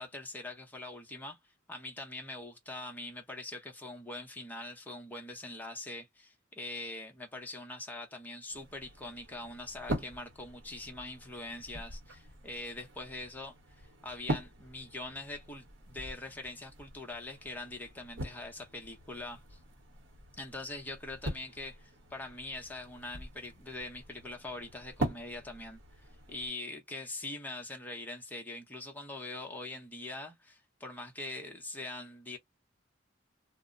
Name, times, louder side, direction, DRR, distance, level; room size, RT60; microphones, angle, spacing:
voice 1, 0.0-1.4 1.7-19.6 20.4-25.8 26.3-32.4, left 2 dB, 10° left, 0.7 m, -43 dB
sound 1, 8.5-26.5, right 1 dB, 70° right, 0.9 m, -43 dB
2.1 x 2.0 x 3.6 m
head